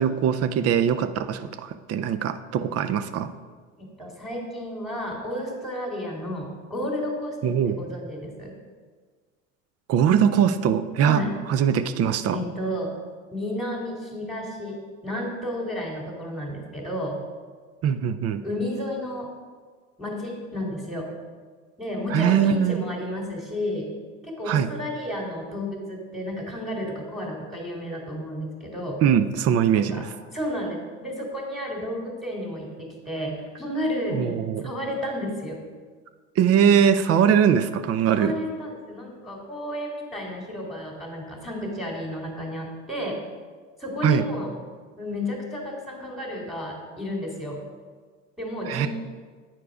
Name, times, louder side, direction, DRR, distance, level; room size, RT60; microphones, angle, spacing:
voice 1, 0.0-3.3 7.4-7.7 9.9-11.2 11.5-12.4 17.8-18.4 22.1-22.8 24.5-24.7 29.0-30.1 34.1-34.7 36.4-38.3 44.0-44.3 48.7-48.9, right 8 dB, 40° right, 11 dB, 0.6 m, -21 dB
voice 2, 3.8-8.5 11.0-11.3 12.3-12.9 13.3-17.2 18.4-19.3 20.0-21.1 21.8-23.9 24.2-29.0 29.9-30.0 30.3-35.6 38.1-43.2 43.8-44.5 45.0-47.7 48.4-48.9, left 1 dB, ahead, -1 dB, 2.4 m, -32 dB
9.0 x 4.6 x 4.9 m, 1.5 s
hypercardioid pair, 80°, 39 cm